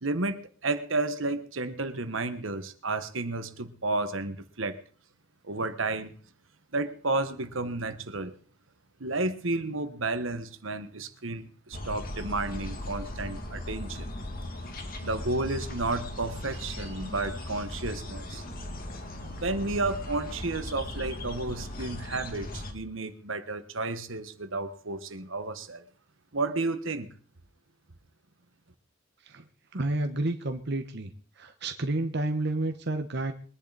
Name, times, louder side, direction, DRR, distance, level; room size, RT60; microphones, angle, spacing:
voice 1, 0.0-4.8 5.4-6.1 6.7-8.3 9.0-14.1 15.0-18.4 19.2-25.8 26.3-27.1, right 2 dB, 75° right, 10 dB, 1.4 m, -32 dB
sound 1, 11.7-22.7, left 1 dB, 45° left, 2.3 m, -38 dB
voice 2, 29.7-31.1 31.4-33.3, right 2 dB, 55° right, 6 dB, 1.2 m, -30 dB
23.0 x 10.5 x 4.1 m, 0.42 s
head